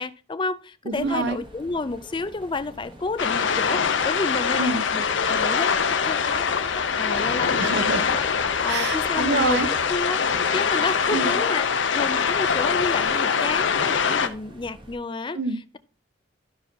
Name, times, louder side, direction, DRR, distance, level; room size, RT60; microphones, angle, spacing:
voice 1, 0.0-6.5 6.8-8.3 8.6-10.2 10.5-15.4, left 3 dB, 25° left, 0.4 m, -30 dB
sound 1, 0.9-15.0, right 1 dB, 25° right, 0.9 m, -46 dB
voice 2, 0.9-1.4 4.6-4.8 7.6-8.0 8.7-9.7 11.1-11.4 15.3-15.8, right 3 dB, 60° right, 0.7 m, -26 dB
sound 2, 1.4-9.9, equal, 5° left, 1.1 m, -45 dB
sound 3, 3.2-14.3, left 6 dB, 70° left, 0.7 m, -23 dB
12.0 x 5.9 x 2.7 m
head